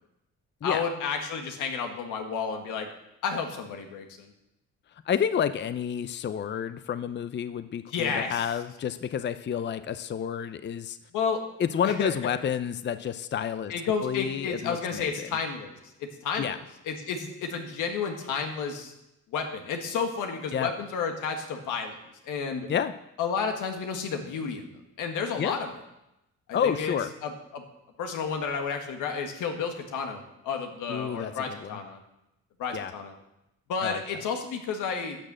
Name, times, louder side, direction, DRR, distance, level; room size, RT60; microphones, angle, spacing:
voice 1, 0.6-2.9 3.2-4.3 7.9-8.5 11.1-11.4 11.8-12.1 13.7-16.6 16.9-18.9 19.3-22.0 22.2-22.7 23.2-25.7 26.5-26.9 27.2-27.6 28.0-32.0 32.6-33.1 33.7-35.2, left 5 dB, 90° left, 4 dB, 1.7 m, -31 dB
voice 2, 5.1-11.0 11.6-13.7 14.0-15.1 16.4-16.6 20.5-20.7 22.7-22.9 25.4-25.6 26.5-27.1 30.9-31.8 32.7-32.9 33.8-34.0, left 8 dB, 35° left, 12 dB, 0.6 m, -29 dB
11.5 x 6.6 x 7.5 m, 0.89 s
cardioid pair, 90°, 30 cm